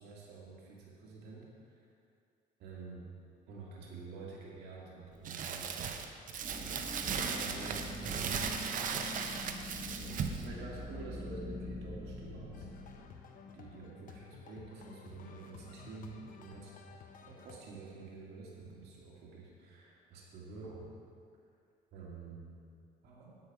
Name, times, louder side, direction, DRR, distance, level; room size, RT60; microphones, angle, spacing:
voice 1, 0.0-1.8 2.6-3.1 3.5-6.3 6.5-9.0 10.0-13.2 13.5-16.8 17.2-21.0 21.9-22.5 23.0-23.4, right 3 dB, 75° right, -4 dB, 2.1 m, -49 dB
Crumpling crinkling, 5.3-10.5, right 6 dB, 50° right, 0.8 m, -37 dB
sound 1, 6.4-13.1, left 1 dB, 25° right, 2.6 m, -44 dB
sound 2, 12.5-17.6, left 6 dB, 55° left, 1.0 m, -53 dB
9.8 x 9.2 x 4.7 m, 2.4 s
cardioid pair, 110°, 17 cm